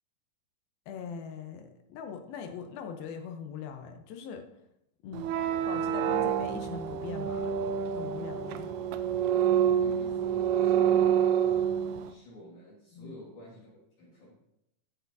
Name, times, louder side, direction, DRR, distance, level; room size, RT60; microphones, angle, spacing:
voice 1, 0.9-4.5 5.0-5.3 5.7-8.7 12.9-13.2, left 6 dB, 75° left, 5 dB, 2.3 m, -41 dB
sound 1, 5.1-12.1, right 9 dB, 85° right, 2.3 m, -27 dB
voice 2, 9.5-11.6 12.0-13.7 14.0-14.4, left 1 dB, 60° left, -4 dB, 2.6 m, -51 dB
15.5 x 6.7 x 2.7 m, 0.82 s
omnidirectional pair, 4.8 m